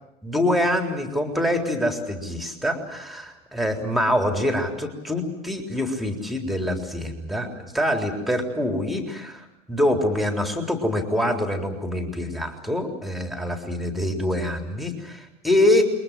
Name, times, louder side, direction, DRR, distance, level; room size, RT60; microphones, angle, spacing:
voice 1, 0.2-15.8, left 1 dB, ahead, 4 dB, 3.8 m, -25 dB
29.5 x 22.5 x 7.6 m, 0.92 s
figure-of-eight pair, 90°, 41 cm